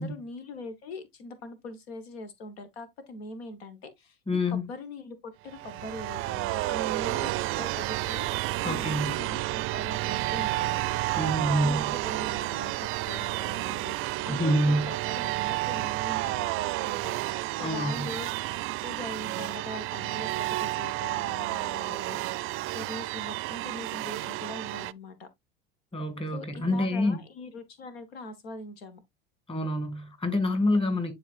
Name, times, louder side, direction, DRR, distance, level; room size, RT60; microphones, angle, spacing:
voice 1, 0.0-4.2 4.5-11.0 11.6-17.2 17.6-18.3 18.8-25.3 26.3-29.0, left 2 dB, 80° left, 1.3 m, -42 dB
voice 2, 4.3-4.7 8.6-9.1 11.2-11.8 14.3-14.9 17.6-18.1 25.9-27.2 29.5-31.1, left 1 dB, 20° left, 2.1 m, -27 dB
sound 1, 5.5-24.9, right 19 dB, 45° right, 0.4 m, -31 dB
10.0 x 4.2 x 2.5 m
hypercardioid pair, 85°, 30 cm